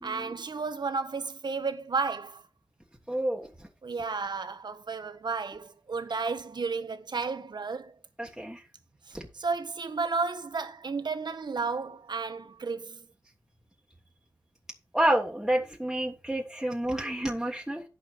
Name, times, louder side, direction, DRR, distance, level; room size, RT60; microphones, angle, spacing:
voice 1, 0.0-2.4 3.8-7.9 9.1-13.1, right 4 dB, 75° right, 1.1 m, -33 dB
voice 2, 3.1-3.5 8.2-8.6 9.1-9.2 14.9-17.8, right 1 dB, 5° right, 1.5 m, -29 dB
12.0 x 5.2 x 5.1 m
wide cardioid pair, 80°, 8 cm